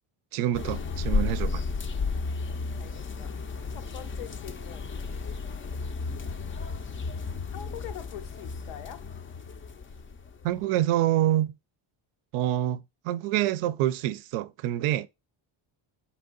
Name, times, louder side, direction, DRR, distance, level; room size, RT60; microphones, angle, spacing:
voice 1, 0.3-1.6 10.4-11.5 12.3-15.1, right 13 dB, 85° right, 0.6 m, -26 dB
sound 1, 0.5-10.6, left 4 dB, 25° left, 0.4 m, -33 dB
voice 2, 2.8-4.9 6.4-6.9 7.5-9.1, left 11 dB, 85° left, 0.7 m, -44 dB
4.3 x 2.8 x 3.8 m
cardioid pair, 100°, 50 cm